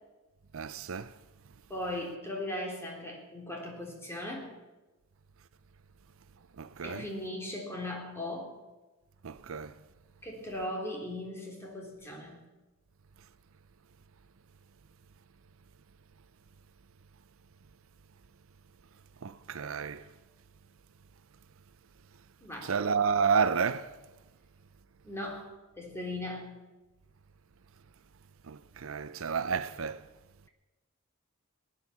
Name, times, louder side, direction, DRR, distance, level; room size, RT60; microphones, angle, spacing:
voice 1, 0.5-1.1 6.6-7.1 9.2-9.8 19.2-20.0 22.6-23.9 28.5-30.0, right 6 dB, 75° right, 0.6 m, -30 dB
voice 2, 1.7-4.5 6.8-8.6 10.2-12.4 22.4-22.8 25.0-25.5 25.8-26.6, left 1 dB, 10° left, 3.5 m, -38 dB
18.5 x 9.9 x 7.2 m
head